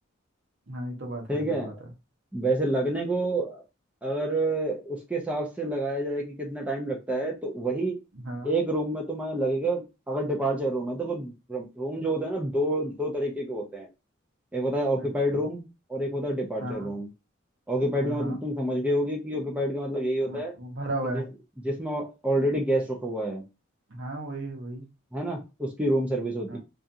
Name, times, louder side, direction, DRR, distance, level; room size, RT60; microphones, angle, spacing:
voice 1, 0.7-1.7 8.2-8.5 15.0-15.1 16.6-16.9 18.0-18.4 20.2-21.2 23.9-24.8 26.5-26.6, right 1 dB, 60° right, 0.8 m, -34 dB
voice 2, 1.3-1.7 2.3-3.6 4.0-8.0 8.4-13.9 14.5-17.1 17.7-20.5 21.0-21.3 21.6-23.4 25.1-26.6, right 1 dB, 5° right, 0.4 m, -28 dB
2.8 x 2.4 x 2.4 m
head